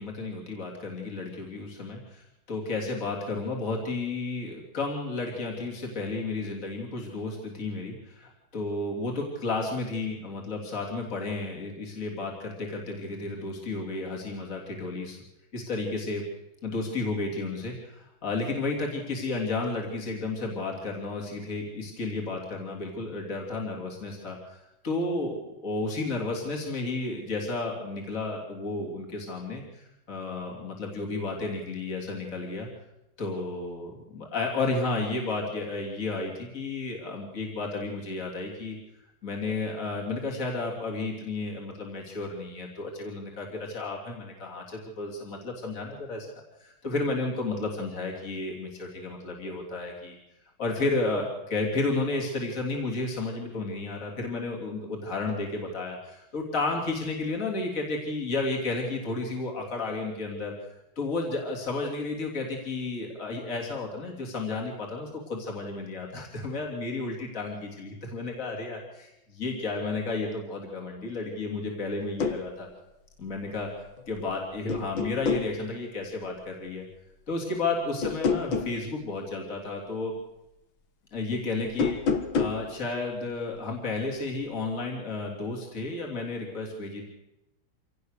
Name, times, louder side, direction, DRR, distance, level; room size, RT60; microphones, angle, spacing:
voice 1, 0.0-15.2 15.5-16.2 16.6-32.7 33.2-38.8 39.2-46.3 46.6-50.2 50.6-60.5 61.0-72.7 73.2-73.7 74.1-76.8 77.3-80.1 81.1-82.0 82.3-87.1, left 3 dB, 40° left, -1 dB, 3.6 m, -32 dB
sound 1, 72.0-72.4 74.0-74.3 74.7-75.5 78.0-78.8 81.7-82.6, left 5 dB, 70° left, 2.3 m, -27 dB
25.5 x 18.0 x 6.7 m, 0.92 s
omnidirectional pair, 2.2 m